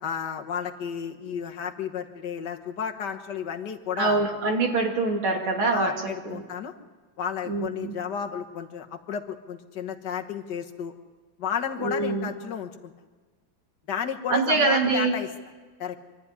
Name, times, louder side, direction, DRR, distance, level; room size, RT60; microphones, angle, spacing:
voice 1, 0.0-4.2 5.7-6.7 7.2-10.9 11.4-12.9 13.9-15.3 15.8-16.0, left 7 dB, 60° left, 4 dB, 1.8 m, -32 dB
voice 2, 4.0-6.4 7.5-7.9 11.8-12.3 14.3-15.1, right 3 dB, 85° right, 2 dB, 3.3 m, -25 dB
25.5 x 12.5 x 9.7 m, 1.4 s
omnidirectional pair, 2.2 m